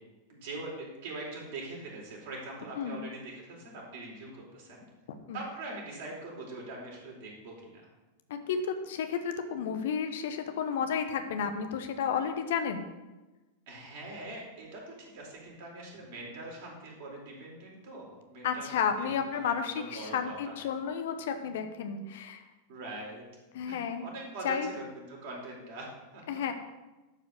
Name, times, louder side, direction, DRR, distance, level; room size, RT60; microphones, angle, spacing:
voice 1, 0.3-4.9 5.3-7.8 13.7-20.5 22.7-23.3 23.7-26.5, right 2 dB, 55° right, -3 dB, 4.1 m, -43 dB
voice 2, 8.3-12.9 18.4-22.4 23.5-24.0 24.4-24.7 26.3-26.5, left 7 dB, 55° left, 7 dB, 1.0 m, -32 dB
11.5 x 5.1 x 6.4 m, 1.1 s
figure-of-eight pair, 90°, 0 cm